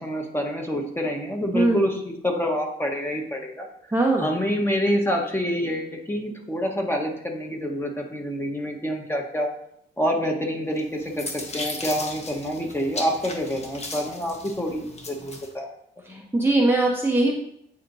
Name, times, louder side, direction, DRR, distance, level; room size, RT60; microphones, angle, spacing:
voice 1, 0.0-3.7 4.2-9.5 10.0-15.7 16.1-16.2, equal, 10° left, 1 dB, 1.2 m, -27 dB
voice 2, 3.9-4.4 16.0-17.4, right 2 dB, 10° right, -2 dB, 0.8 m, -21 dB
sound 1, 10.8-15.5, left 2 dB, 35° left, 1.0 m, -36 dB
8.7 x 4.3 x 2.7 m, 0.74 s
cardioid pair, 90°, 20 cm